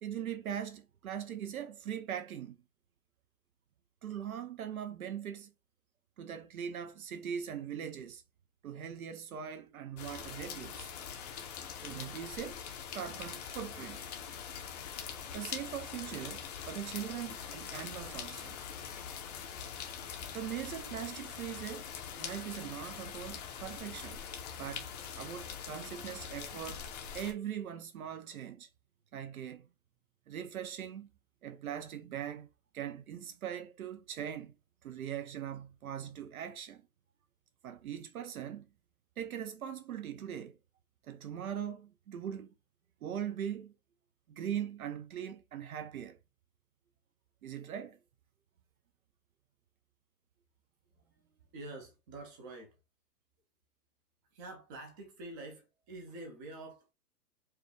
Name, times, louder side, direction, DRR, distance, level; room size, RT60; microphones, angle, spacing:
voice 1, 0.0-2.6 4.0-5.5 6.2-8.2 8.6-10.9 11.8-12.6 12.9-14.1 15.3-18.6 20.3-21.9 22.2-24.2 24.6-24.9 25.1-26.8 27.1-28.7 29.1-29.7 30.3-31.1 31.4-32.5 32.7-34.5 34.8-36.8 37.6-38.7 39.2-40.6 41.0-42.5 43.0-43.7 44.3-46.2 47.4-48.0, right 9 dB, 65° right, 0.7 m, -41 dB
sound 1, 10.0-27.3, left 8 dB, 25° left, 0.6 m, -43 dB
voice 2, 51.0-52.8 54.3-56.9, right 2 dB, 15° right, 0.5 m, -47 dB
4.7 x 2.3 x 3.2 m
hypercardioid pair, 145°, 47 cm